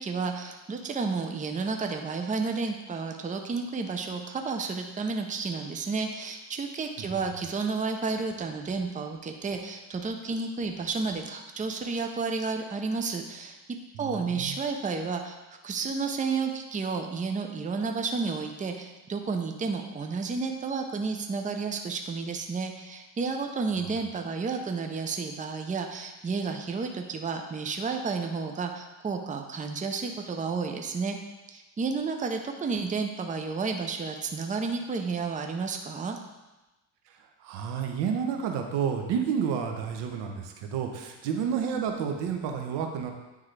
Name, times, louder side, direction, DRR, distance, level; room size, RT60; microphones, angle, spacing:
voice 1, 0.0-13.6 14.0-15.4 15.6-31.2 31.5-36.2, right 4 dB, 20° right, 4 dB, 0.6 m, -31 dB
voice 2, 13.9-14.5 37.4-43.1, right 7 dB, 80° right, 4 dB, 0.9 m, -30 dB
9.2 x 3.6 x 3.3 m, 1.1 s
cardioid pair, 90°, 41 cm